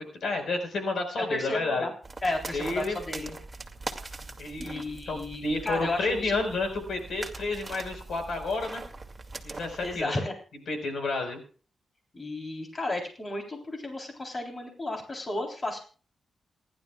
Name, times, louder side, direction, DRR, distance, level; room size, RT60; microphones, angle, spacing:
voice 1, 0.2-1.9 2.5-3.0 4.4-8.8 9.4-10.2 10.7-11.4, left 3 dB, 70° left, 5 dB, 4.8 m, -30 dB
voice 2, 1.3-1.9 2.2-3.4 4.6-6.5 9.8-10.3 12.1-15.8, left 2 dB, 30° left, 2 dB, 3.6 m, -33 dB
sound 1, 2.0-10.0, right 3 dB, 20° right, 2.3 m, -42 dB
28.0 x 11.5 x 2.4 m, 0.39 s
cardioid pair, 105°, 0 cm